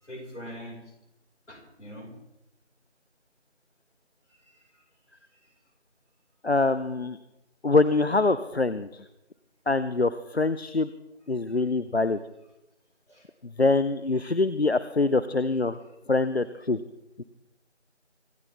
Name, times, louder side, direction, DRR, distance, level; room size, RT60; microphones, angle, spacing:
voice 1, 0.0-0.9 1.5-2.1 4.3-4.8 5.4-5.6 11.5-11.6 13.1-13.3, equal, 75° left, 1 dB, 5.3 m, -44 dB
voice 2, 6.4-7.2 7.6-9.0 9.7-10.9 11.3-12.2 13.6-15.8 16.1-16.8 17.2-17.3, left 3 dB, 60° left, 13 dB, 0.7 m, -24 dB
25.0 x 12.0 x 3.5 m, 0.89 s
figure-of-eight pair, 180°, 35 cm